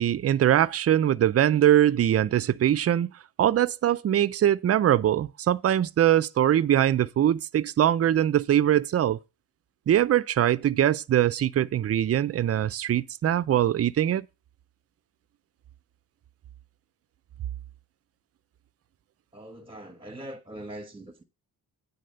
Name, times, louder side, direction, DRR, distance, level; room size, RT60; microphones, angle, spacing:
voice 1, 0.0-3.1 3.4-9.2 9.9-14.3, right 11 dB, 35° right, 0.4 m, -22 dB
voice 2, 19.3-21.2, right 1 dB, 15° right, 1.1 m, -42 dB
9.3 x 4.1 x 6.6 m
cardioid pair, 110°, 41 cm